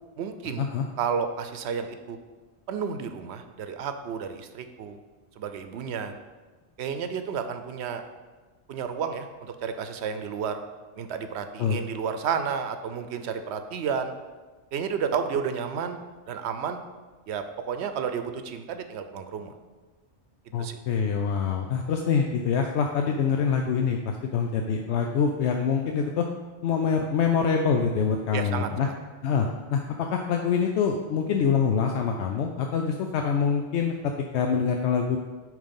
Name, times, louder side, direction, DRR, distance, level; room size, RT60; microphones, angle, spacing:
voice 1, 0.2-0.7 1.0-2.2 2.7-5.0 5.4-6.1 6.8-8.0 8.7-10.6 11.0-14.1 14.7-16.8 17.3-19.5 20.6-20.8 28.3-28.9, right 6 dB, 80° right, 8 dB, 0.9 m, -31 dB
voice 2, 20.5-26.3 26.6-28.9 29.2-35.2, left 6 dB, 85° left, 3 dB, 0.9 m, -25 dB
8.9 x 3.3 x 5.2 m, 1.3 s
omnidirectional pair, 1.1 m